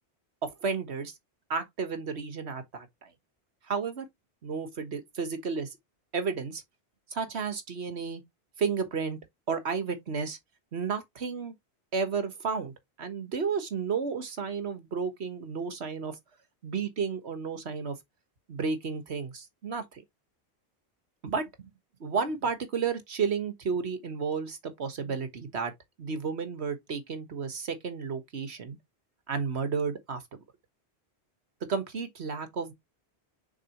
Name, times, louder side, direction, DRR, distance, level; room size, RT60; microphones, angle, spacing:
voice 1, 0.4-1.1 1.5-3.1 3.7-4.0 4.4-5.8 6.1-6.6 7.1-8.2 8.6-9.2 9.5-10.4 10.7-11.5 11.9-16.2 16.6-17.9 18.5-20.0 21.2-21.7 22.0-25.7 26.0-28.8 29.3-30.2 31.7-32.7, right 5 dB, 75° right, 1.6 m, -32 dB
6.7 x 4.9 x 2.9 m
omnidirectional pair, 1.1 m